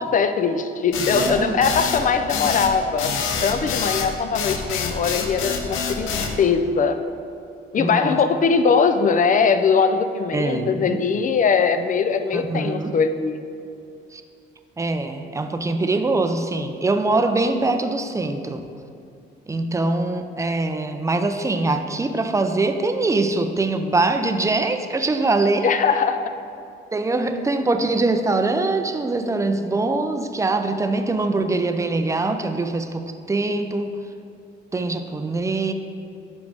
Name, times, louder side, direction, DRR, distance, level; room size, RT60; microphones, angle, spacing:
voice 1, 0.0-3.1 3.4-7.0 7.7-13.4 25.6-26.3, left 5 dB, 40° left, 9 dB, 0.5 m, -21 dB
sound 1, 0.9-6.4, left 6 dB, 80° left, 0.7 m, -26 dB
voice 2, 1.1-1.6 7.8-8.2 10.3-11.0 12.3-13.0 14.1-14.2 14.8-18.6 19.5-25.7 26.9-34.0 34.7-35.7, right 2 dB, 15° right, 8 dB, 0.5 m, -23 dB
9.8 x 5.2 x 3.5 m, 2.5 s
cardioid pair, 90°, 20 cm